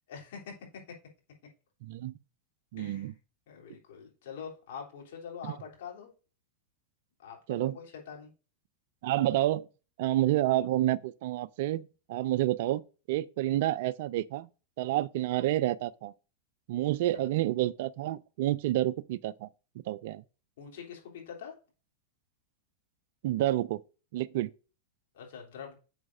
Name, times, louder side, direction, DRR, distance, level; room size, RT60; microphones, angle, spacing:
voice 1, 0.1-0.6 2.8-3.1 3.5-6.1 7.2-8.3 17.1-17.2 20.6-21.5 25.1-25.8, left 6 dB, 55° left, 3.2 m, -44 dB
voice 2, 1.8-2.1 2.7-3.1 5.4-5.5 7.5-7.8 9.0-9.7 10.0-12.8 13.1-14.5 14.8-16.1 16.7-19.5 19.9-20.2 23.2-23.8 24.1-24.5, right 14 dB, 50° right, 0.4 m, -29 dB
10.5 x 7.3 x 2.6 m
figure-of-eight pair, 90°, 0 cm